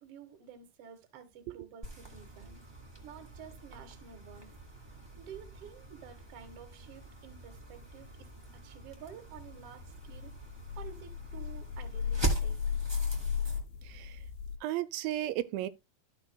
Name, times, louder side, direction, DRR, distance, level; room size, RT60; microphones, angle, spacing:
voice 1, 0.0-2.6 3.0-4.5 4.8-10.4 10.7-12.8, right 7 dB, 55° right, 1.7 m, -51 dB
sound 1, 1.8-13.6, right 3 dB, 20° right, 0.6 m, -42 dB
sound 2, 6.9-8.5 8.9-9.0 9.3-14.6, left 7 dB, 85° left, 2.3 m, -36 dB
voice 2, 13.9-14.2 14.6-15.7, right 14 dB, 85° right, 2.4 m, -34 dB
13.0 x 5.9 x 2.2 m
omnidirectional pair, 4.1 m